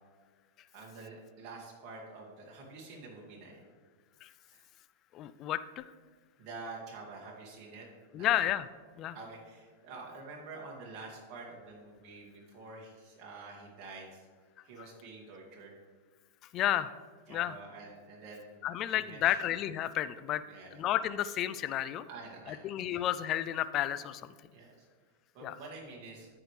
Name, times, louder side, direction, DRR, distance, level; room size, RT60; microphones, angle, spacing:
voice 1, 0.7-3.5 4.5-4.6 6.4-7.9 8.1-8.3 9.1-14.2 14.6-15.7 17.3-18.4 18.9-19.4 20.5-20.8 22.1-23.0 24.5-24.7 25.3-26.3, right 3 dB, 45° right, -3 dB, 2.1 m, -47 dB
voice 2, 5.1-5.9 8.1-8.7 9.0-9.2 14.8-14.9 16.5-16.9 17.3-17.6 18.6-20.4 20.7-22.0 22.5-24.3 25.4-25.6, left 12 dB, 40° left, 14 dB, 0.3 m, -32 dB
13.0 x 4.9 x 3.2 m, 1.5 s
hypercardioid pair, 120°, 0 cm